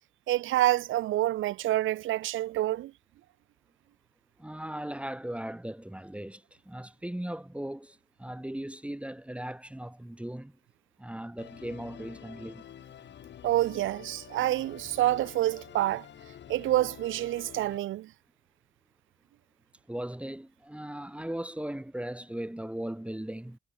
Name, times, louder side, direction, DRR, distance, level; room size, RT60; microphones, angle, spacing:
voice 1, 0.3-2.9 13.4-16.0 16.5-18.1, right 14 dB, 80° right, 1.3 m, -27 dB
voice 2, 4.4-10.6 11.0-12.6 19.9-23.6, right 1 dB, 5° right, 2.2 m, -38 dB
Musical instrument, 11.4-17.8, left 10 dB, 65° left, 5.2 m, -48 dB
cardioid pair, 90°, 20 cm